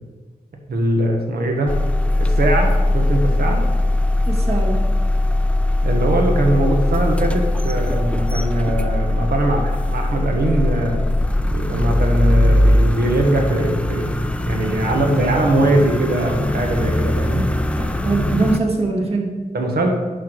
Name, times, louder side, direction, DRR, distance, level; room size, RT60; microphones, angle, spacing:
voice 1, 0.7-1.8 2.2-3.6 5.8-11.0 11.5-14.1 14.5-17.5 19.5-19.9, right 1 dB, 85° right, 2 dB, 1.4 m, -21 dB
sound 1, 1.7-18.6, left 1 dB, 10° left, 0.4 m, -20 dB
voice 2, 4.3-4.9 17.8-19.3, right 3 dB, 40° right, -1 dB, 1.6 m, -22 dB
11.0 x 4.7 x 4.7 m, 1.4 s
wide cardioid pair, 135°, 16 cm